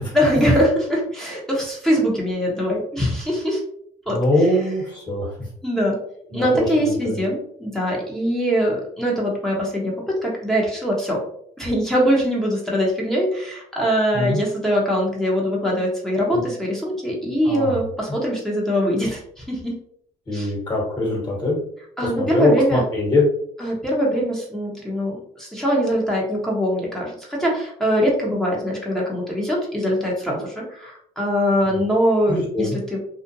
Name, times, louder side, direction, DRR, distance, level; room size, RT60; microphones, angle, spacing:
voice 1, 0.1-3.6 4.1-4.2 5.6-6.0 6.3-11.2 11.6-19.7 20.3-20.5 22.0-22.8 23.6-33.0, equal, 5° left, -4 dB, 0.8 m, -22 dB
voice 2, 4.1-5.3 6.3-7.2 14.1-14.4 16.3-16.4 17.4-17.8 20.3-21.6 22.0-23.2 31.6-31.8 32.3-32.8, left 2 dB, 30° left, -2 dB, 1.3 m, -23 dB
2.5 x 2.1 x 2.6 m, 0.67 s
supercardioid pair, 85°, 15 cm